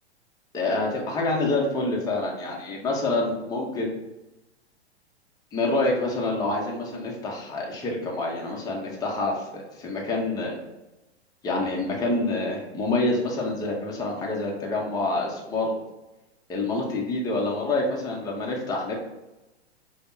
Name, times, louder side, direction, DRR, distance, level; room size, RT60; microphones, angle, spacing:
voice 1, 0.5-3.9 5.5-10.5 11.4-15.7 16.5-18.9, left 2 dB, 10° left, -2 dB, 0.6 m, -27 dB
5.1 x 2.1 x 2.6 m, 1.0 s
hypercardioid pair, 110°, 33 cm